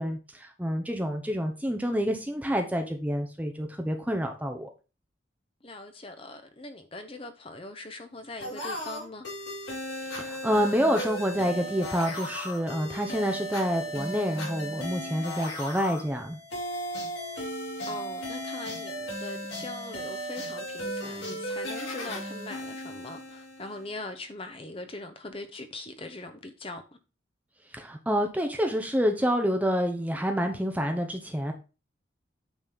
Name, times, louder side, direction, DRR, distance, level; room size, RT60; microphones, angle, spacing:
voice 1, 0.0-4.7 10.0-16.4 27.7-31.5, equal, 10° right, 0.8 m, -28 dB
voice 2, 5.6-9.3 17.9-26.8, left 2 dB, 30° left, 1.1 m, -41 dB
sound 1, 8.4-23.9, equal, 80° left, 4.7 m, -36 dB
9.1 x 4.2 x 5.3 m
head